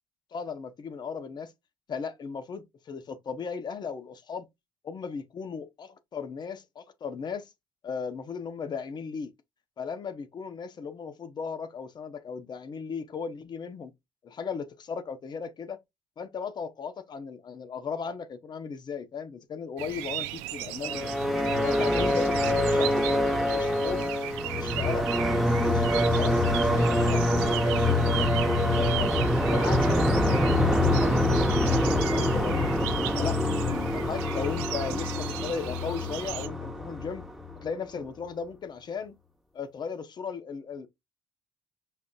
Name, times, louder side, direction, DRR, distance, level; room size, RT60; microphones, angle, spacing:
voice 1, 0.3-1.5 1.9-4.5 4.8-7.5 7.8-9.3 9.8-13.9 14.2-15.8 16.2-20.3 20.5-21.1 21.6-23.1 23.5-24.0 24.4-25.1 25.5-29.1 29.4-37.3 37.6-39.1 39.5-40.9, left 6 dB, 45° left, 0.7 m, -36 dB
sound 1, 19.8-36.5, right 14 dB, 85° right, 0.4 m, -37 dB
sound 2, 20.8-37.7, left 1 dB, ahead, 0.9 m, -25 dB
5.4 x 2.5 x 2.3 m
supercardioid pair, 65°, 10 cm